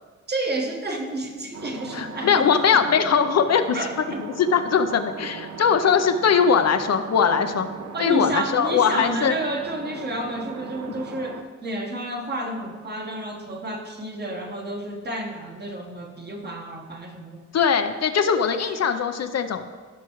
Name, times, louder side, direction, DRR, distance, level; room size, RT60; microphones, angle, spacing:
voice 1, 0.3-2.8 3.7-4.3 7.9-17.4 18.6-18.7, right 1 dB, 35° right, 2 dB, 1.3 m, -31 dB
sound 1, 1.5-11.4, right 5 dB, 60° right, 0.8 m, -38 dB
voice 2, 1.9-4.0 4.4-7.7 8.0-9.3 17.5-19.7, left 6 dB, 60° left, 8 dB, 0.6 m, -21 dB
16.0 x 6.1 x 3.1 m, 1.5 s
wide cardioid pair, 140°, 30 cm